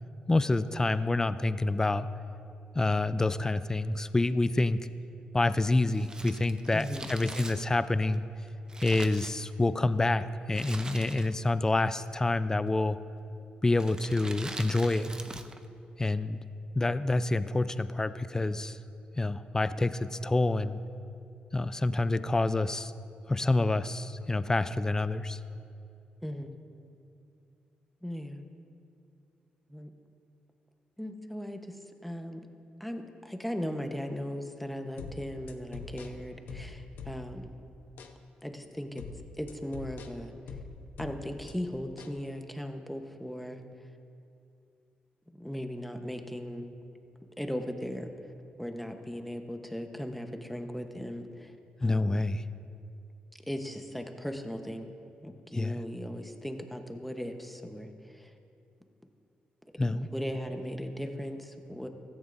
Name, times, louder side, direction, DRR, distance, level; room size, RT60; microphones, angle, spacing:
voice 1, 0.3-2.1 2.7-4.8 5.3-8.2 8.8-13.0 13.6-15.1 16.0-16.4 16.7-18.8 19.2-20.8 21.5-22.9 23.3-25.4 51.8-52.4 55.5-55.8 59.8-60.1, left 2 dB, 20° left, 13 dB, 0.4 m, -27 dB
Crumpling crinkling, 5.9-9.9 10.5-11.5 11.8-11.9 12.7-13.1 13.7-15.6 15.9-16.0, right 2 dB, 25° right, 0.7 m, -43 dB
voice 2, 6.7-7.1 26.2-26.5 28.0-28.5 29.7-29.9 31.0-31.8 32.0-32.4 32.8-37.5 38.4-39.0 39.4-40.3 41.0-43.6 45.3-46.6 47.4-48.1 48.6-51.5 51.8-52.2 53.5-54.9 55.2-58.3 59.9-61.9, equal, ahead, 5 dB, 1.0 m, -38 dB
sound 1, 35.0-37.5 38.0-38.2 39.0-41.5 42.0-42.2, left 5 dB, 80° left, 0.8 m, -44 dB
16.0 x 13.5 x 2.6 m, 2.6 s
cardioid pair, 80°, 3 cm